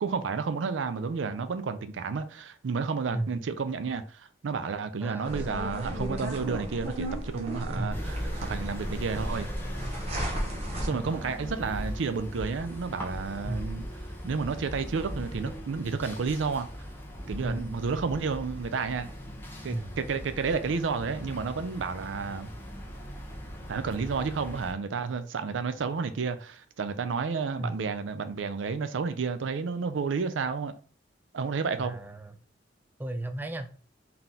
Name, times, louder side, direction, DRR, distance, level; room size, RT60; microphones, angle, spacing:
voice 1, 0.0-9.5 10.8-13.9 14.2-16.7 17.3-19.1 19.6-22.5 23.7-30.7 31.3-32.0, right 5 dB, 90° right, 0.4 m, -31 dB
voice 2, 5.0-5.5 7.8-8.1 10.9-11.3 13.5-13.7 17.4-17.7 19.7-19.9 27.6-27.8 31.8-32.3 33.0-33.7, right 1 dB, 10° right, 0.3 m, -35 dB
sound 1, 5.2-10.9, equal, 35° right, 1.0 m, -34 dB
sound 2, 7.9-24.7, equal, 10° left, 0.8 m, -40 dB
3.9 x 2.8 x 3.7 m
head